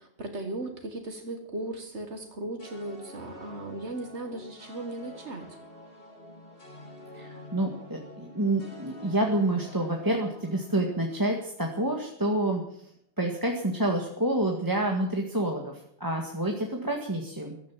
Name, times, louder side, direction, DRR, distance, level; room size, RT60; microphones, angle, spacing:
voice 1, 0.0-5.5, right 2 dB, 85° right, 4 dB, 2.0 m, -37 dB
sound 1, 2.6-11.9, left 1 dB, 55° left, 2.9 m, -48 dB
voice 2, 7.1-12.8 13.2-17.7, right 1 dB, 20° right, 0 dB, 1.9 m, -28 dB
15.5 x 12.5 x 7.3 m, 0.70 s
omnidirectional pair, 1.1 m